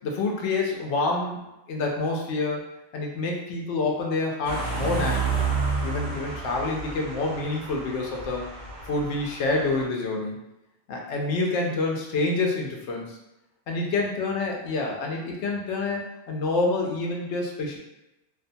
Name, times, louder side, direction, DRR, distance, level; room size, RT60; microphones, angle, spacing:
voice 1, 0.0-2.6 2.9-5.4 5.8-8.5 8.9-10.4 10.9-13.2 13.7-17.8, left 3 dB, 75° left, -1 dB, 0.9 m, -27 dB
sound 1, 4.4-9.8, right 4 dB, 45° right, 0.6 m, -30 dB
2.5 x 2.2 x 2.6 m, 0.93 s
omnidirectional pair, 1.2 m